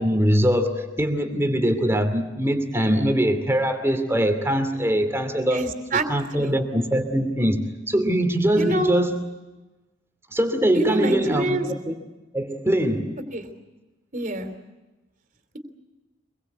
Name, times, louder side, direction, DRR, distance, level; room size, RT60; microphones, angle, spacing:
voice 1, 0.0-9.2 10.3-12.0 12.3-13.2, right 1 dB, 15° right, 2.6 m, -22 dB
voice 2, 5.5-6.0 6.3-6.5 8.6-8.9 10.7-11.7 13.3-13.5 14.1-14.5, right 1 dB, 40° right, 3.3 m, -26 dB
25.5 x 22.0 x 8.1 m
head